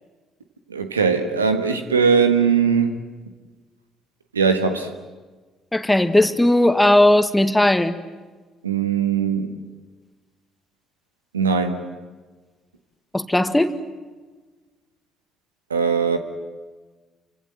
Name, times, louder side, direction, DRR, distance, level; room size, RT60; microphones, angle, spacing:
voice 1, 0.7-3.0 4.3-4.9 8.6-9.5 11.3-11.9 15.7-16.2, right 6 dB, 80° right, 1.5 m, -20 dB
voice 2, 5.7-7.9 13.1-13.8, left 1 dB, 10° left, 1.8 m, -17 dB
28.5 x 25.0 x 7.8 m
figure-of-eight pair, 45°, 0 cm